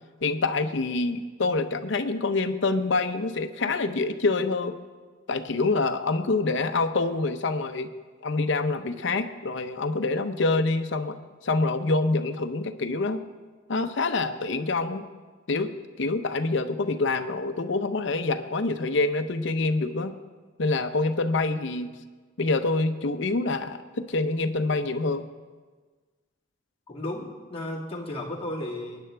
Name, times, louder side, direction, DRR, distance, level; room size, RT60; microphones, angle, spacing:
voice 1, 0.2-4.8 5.3-7.9 8.2-11.2 11.4-13.2 13.7-15.0 15.5-20.1 20.6-21.9 22.4-25.3, left 3 dB, 65° left, 9 dB, 0.7 m, -26 dB
voice 2, 26.9-29.0, left 1 dB, 30° left, -3 dB, 2.0 m, -34 dB
23.0 x 9.9 x 3.4 m, 1.4 s
head